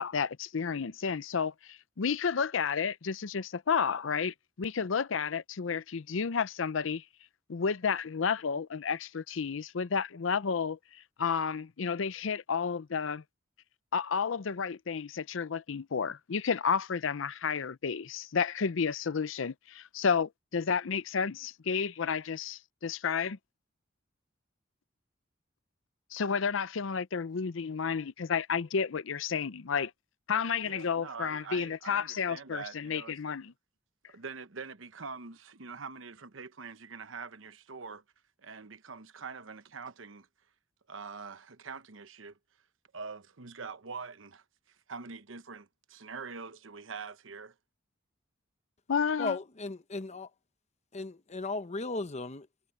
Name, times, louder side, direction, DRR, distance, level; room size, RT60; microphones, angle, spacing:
voice 1, 0.0-7.0 7.5-13.2 13.9-23.4 26.1-29.9 30.3-33.5 48.9-49.4, left 6 dB, 75° left, 0.6 m, -31 dB
voice 2, 30.6-33.1 34.1-38.0 38.4-40.3 40.9-42.4 42.9-47.5, right 5 dB, 80° right, 1.0 m, -44 dB
voice 3, 49.2-50.3 50.9-52.7, left 3 dB, 35° left, 1.0 m, -36 dB
head